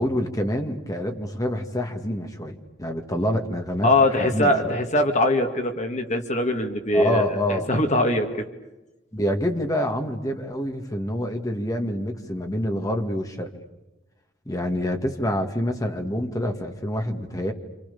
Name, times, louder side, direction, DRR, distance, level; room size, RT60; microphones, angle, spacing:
voice 1, 0.0-3.9 4.2-4.8 6.9-7.7 9.1-13.5 14.5-17.5, equal, 20° left, 4 dB, 2.2 m, -27 dB
voice 2, 3.8-8.3, left 1 dB, 40° left, 5 dB, 2.1 m, -22 dB
28.5 x 27.5 x 7.0 m, 1.0 s
head